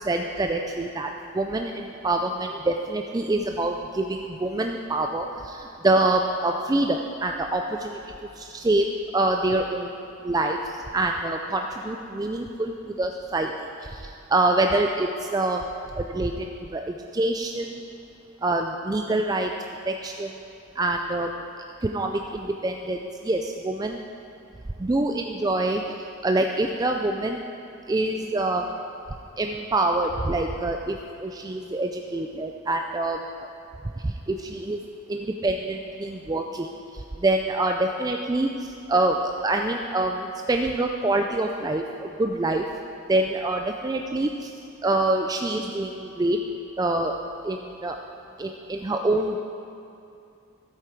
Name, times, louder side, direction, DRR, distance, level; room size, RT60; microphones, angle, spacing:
voice 1, 0.0-8.0 8.4-8.9 9.1-10.0 10.2-13.5 13.8-15.7 15.9-16.5 16.7-17.8 18.4-19.5 19.9-20.4 20.8-21.3 21.8-24.0 24.8-26.0 26.2-27.4 27.9-28.8 29.4-33.5 34.0-34.8 35.1-42.6 43.1-44.5 44.8-46.4 46.8-47.2 47.4-48.0 48.4-49.4, right 2 dB, 15° right, 3 dB, 0.3 m, -26 dB
13.5 x 8.1 x 4.5 m, 2.7 s
head